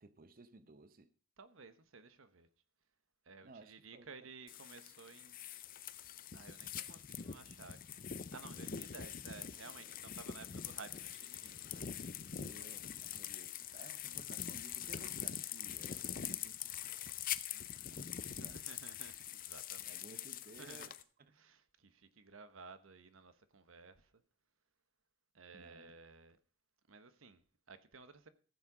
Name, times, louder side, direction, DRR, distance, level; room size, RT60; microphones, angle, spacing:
voice 1, 0.0-1.1 3.4-4.1 12.4-16.9 17.9-18.8 19.8-21.3 25.5-25.9, right 2 dB, 45° right, 0.8 m, -58 dB
voice 2, 1.4-2.5 3.2-5.4 6.3-12.3 17.5-20.0 20.6-20.9 21.3-24.2 25.3-26.4 26.9-28.3, right 4 dB, 80° right, 1.0 m, -56 dB
sound 1, 4.5-21.0, left 9 dB, 45° left, 0.6 m, -44 dB
15.0 x 7.3 x 4.9 m
head